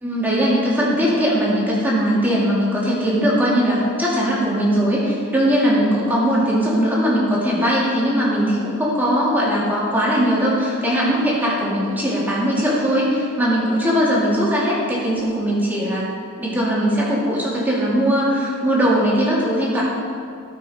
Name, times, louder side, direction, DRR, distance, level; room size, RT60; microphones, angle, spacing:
voice 1, 0.0-16.1 16.4-19.8, equal, 10° right, -7 dB, 2.6 m, -19 dB
17.5 x 6.0 x 4.5 m, 2.4 s
head